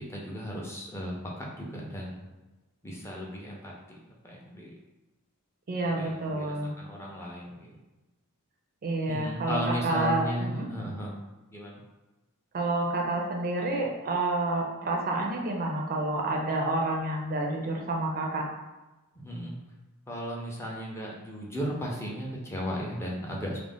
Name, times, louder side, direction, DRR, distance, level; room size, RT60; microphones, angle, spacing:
voice 1, 0.0-2.3 2.8-3.8 4.1-4.7 6.0-7.7 9.1-11.1 11.5-11.8 19.2-19.6 20.1-23.6, equal, 10° left, -3 dB, 0.5 m, -35 dB
voice 2, 5.7-6.7 8.8-10.7 12.5-18.4, right 2 dB, 40° right, 0 dB, 0.5 m, -29 dB
2.4 x 2.0 x 3.4 m, 1.1 s
head